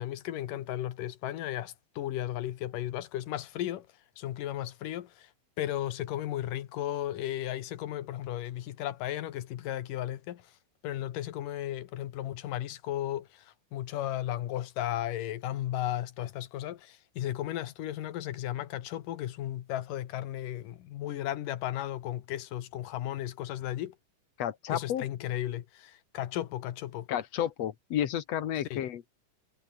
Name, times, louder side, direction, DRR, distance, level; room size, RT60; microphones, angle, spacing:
voice 1, 0.0-3.9 4.2-5.3 5.6-10.5 10.8-24.0 24.7-27.1 28.7-28.8, left 13 dB, 85° left, 2.9 m, -35 dB
voice 2, 24.4-25.0 27.1-29.1, left 10 dB, 60° left, 2.3 m, -31 dB
omnidirectional pair, 3.8 m